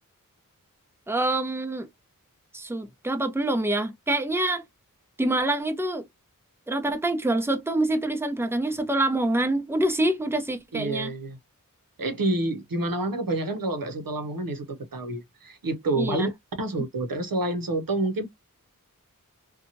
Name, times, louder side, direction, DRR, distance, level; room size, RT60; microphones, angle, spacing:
voice 1, 1.1-1.9 2.5-4.6 5.2-6.0 6.7-11.1 16.0-16.3, right 1 dB, 5° right, 0.6 m, -26 dB
voice 2, 10.7-11.4 12.0-16.3 16.6-18.3, right 2 dB, 85° right, 0.7 m, -28 dB
2.8 x 2.3 x 2.6 m
wide cardioid pair, 60°, 33 cm